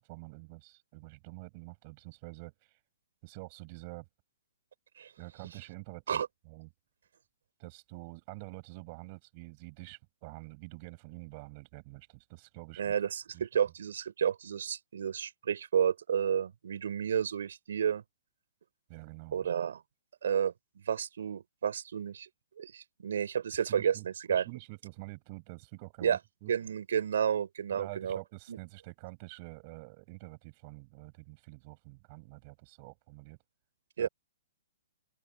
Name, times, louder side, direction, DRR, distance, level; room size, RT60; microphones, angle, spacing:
voice 1, 0.1-2.8 3.2-4.1 5.2-6.7 7.6-12.9 13.3-13.5 18.9-19.5 23.7-24.0 24.4-26.5 27.7-33.4 34.0-34.1, right 27 dB, 30° right, 7.6 m, -47 dB
voice 2, 12.8-18.0 19.3-19.8 20.2-22.3 22.6-24.4 26.0-26.2 26.5-28.2 28.5-28.6 34.0-34.1, right 8 dB, 70° right, 5.3 m, -31 dB
open air
hypercardioid pair, 165°, 0 cm